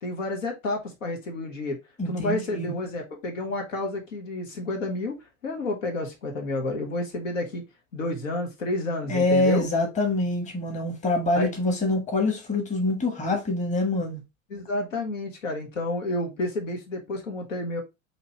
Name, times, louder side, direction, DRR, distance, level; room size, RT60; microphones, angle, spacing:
voice 1, 0.0-1.8 2.1-5.2 5.4-7.6 7.9-9.6 11.3-11.5 14.5-17.8, left 2 dB, 70° left, 1.3 m, -30 dB
voice 2, 2.0-2.7 9.1-14.2, left 2 dB, 20° left, 1.3 m, -25 dB
4.9 x 2.9 x 2.9 m
figure-of-eight pair, 80°, 40 cm